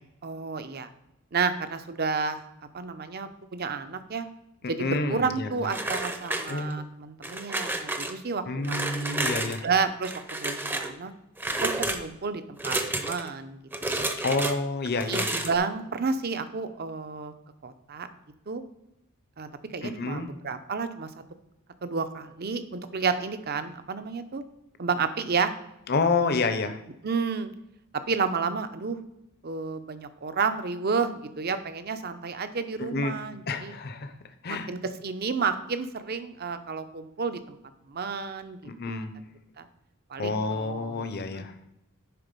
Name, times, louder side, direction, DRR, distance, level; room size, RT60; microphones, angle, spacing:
voice 1, 0.2-0.9 1.3-2.4 2.7-4.3 4.7-11.1 11.6-14.1 15.1-17.3 17.6-18.1 18.5-18.6 19.4-21.1 21.8-24.4 24.8-25.5 27.0-27.5 28.1-29.0 29.4-33.8 34.5-37.6 37.9-38.6 39.6-39.7 40.1-41.5, right 5 dB, 45° right, 10 dB, 0.6 m, -31 dB
voice 2, 4.8-5.5 6.5-6.8 8.5-9.6 14.2-15.3 19.8-20.3 25.9-26.8 32.8-33.1 33.5-34.1 34.4-34.7 38.6-39.1 40.2-41.5, left 3 dB, 50° left, 9 dB, 0.7 m, -28 dB
sound 1, 5.7-6.8 7.2-8.1 8.6-9.6 10.0-10.9 11.4-12.0 12.6-13.3 13.7-14.5 15.0-15.6, right 2 dB, 10° right, 0.6 m, -30 dB
10.5 x 3.9 x 5.3 m, 0.88 s
head